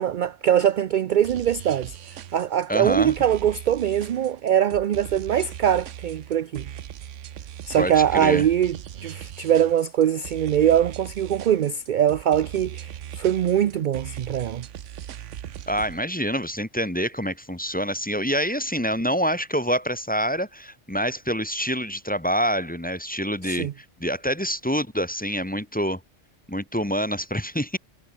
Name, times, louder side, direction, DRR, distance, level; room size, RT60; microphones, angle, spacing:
voice 1, 0.0-6.7 7.7-14.7 23.4-23.7, right 10 dB, 55° right, 0.5 m, -22 dB
sound 1, 1.2-16.0, right 10 dB, 80° right, 1.1 m, -39 dB
voice 2, 2.7-3.1 7.8-8.5 15.7-26.0 26.5-27.8, equal, 5° left, 1.2 m, -26 dB
omnidirectional pair, 1.2 m